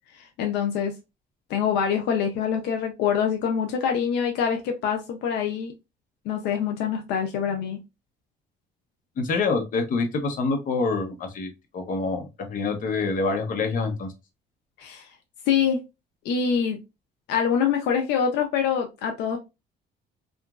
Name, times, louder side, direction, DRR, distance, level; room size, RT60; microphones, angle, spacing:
voice 1, 0.1-0.9 1.5-5.7 6.3-7.8 14.8-15.1 15.5-15.8 16.2-16.8 17.3-19.4, left 7 dB, 85° left, 0.5 m, -25 dB
voice 2, 9.2-14.1, left 4 dB, 50° left, 0.8 m, -26 dB
2.9 x 2.5 x 2.3 m
cardioid pair, 110°, 17 cm